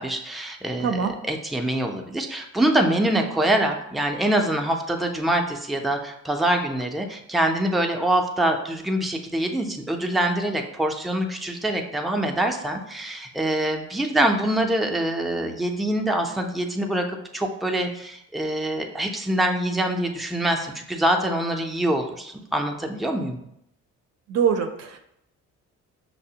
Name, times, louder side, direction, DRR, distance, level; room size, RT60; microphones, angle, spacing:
voice 1, 0.0-23.4, right 1 dB, ahead, 3 dB, 0.4 m, -25 dB
voice 2, 0.8-1.1 24.3-25.0, right 7 dB, 55° right, 5 dB, 0.5 m, -23 dB
5.8 x 2.0 x 2.7 m, 0.77 s
cardioid pair, 90°, 30 cm